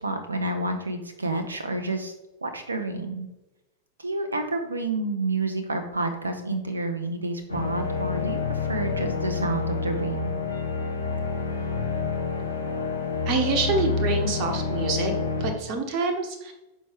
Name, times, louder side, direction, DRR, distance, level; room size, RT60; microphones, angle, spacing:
voice 1, 0.0-2.1 2.4-3.3 4.0-10.4, right 2 dB, 75° right, 7 dB, 0.6 m, -29 dB
sound 1, 7.5-15.5, left 4 dB, 90° left, 1.2 m, -28 dB
voice 2, 13.3-15.1 15.4-16.5, right 3 dB, 40° right, 4 dB, 1.1 m, -26 dB
6.2 x 4.5 x 3.5 m, 0.98 s
figure-of-eight pair, 90°, 0 cm